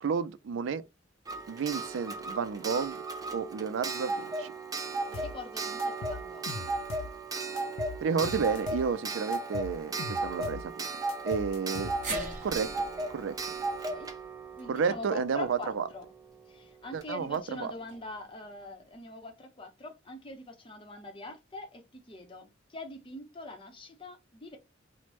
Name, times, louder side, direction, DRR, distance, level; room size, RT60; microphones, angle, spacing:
voice 1, 0.0-0.8 1.5-3.0 3.3-4.5 8.0-10.9 11.2-11.9 12.4-12.7 13.1-13.3 14.7-15.8 16.9-17.7, right 6 dB, 70° right, 0.4 m, -31 dB
Clock, 1.3-15.8 17.0-17.1 17.3-17.4, right 3 dB, 20° right, 0.5 m, -36 dB
sound 1, 5.1-5.4 5.8-7.2 7.6-8.9 9.3-10.7 11.1-12.3, left 6 dB, 90° left, 0.3 m, -41 dB
voice 2, 5.1-6.7 13.9-14.1 14.6-16.1 16.5-24.6, left 2 dB, 25° left, 0.7 m, -43 dB
sound 2, 12.0-16.3 16.6-16.7 17.9-18.0, right 3 dB, 40° right, 1.0 m, -43 dB
3.1 x 2.0 x 3.0 m
head